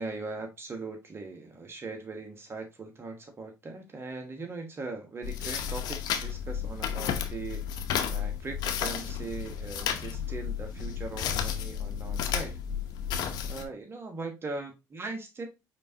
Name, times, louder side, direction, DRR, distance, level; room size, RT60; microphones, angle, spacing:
voice 1, 0.0-7.6 8.1-12.5 13.5-15.5, right 3 dB, 35° right, 1.1 m, -40 dB
sound 1, 5.2-13.6, left 8 dB, 65° left, 0.7 m, -32 dB
5.0 x 3.4 x 2.7 m
supercardioid pair, 70°, 7 cm